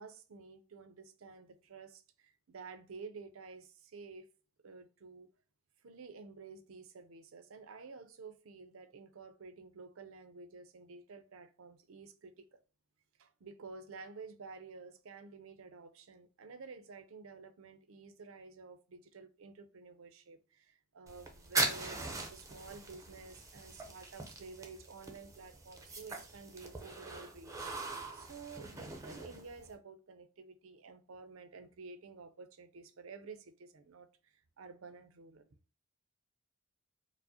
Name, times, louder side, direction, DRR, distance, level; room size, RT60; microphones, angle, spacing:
voice 1, 0.0-4.3 4.6-5.3 5.8-12.6 13.2-35.5, right 4 dB, 70° right, 0.6 m, -51 dB
sound 1, 21.1-29.7, right 3 dB, 15° right, 0.6 m, -41 dB
4.7 x 2.1 x 2.7 m
head